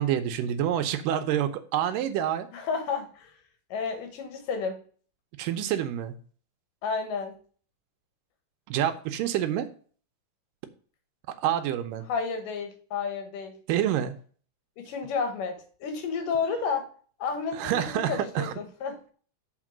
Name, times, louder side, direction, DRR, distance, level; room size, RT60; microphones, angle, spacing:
voice 1, 0.0-2.5 5.4-6.2 8.7-9.7 11.4-12.1 13.7-14.1 17.5-18.5, right 10 dB, 90° right, 8 dB, 2.4 m, -27 dB
voice 2, 2.5-3.3 3.7-4.8 6.8-7.3 12.1-13.6 14.8-16.9 17.2-19.0, left 5 dB, 85° left, 6 dB, 3.0 m, -31 dB
7.4 x 4.4 x 6.0 m, 0.43 s
omnidirectional pair, 3.7 m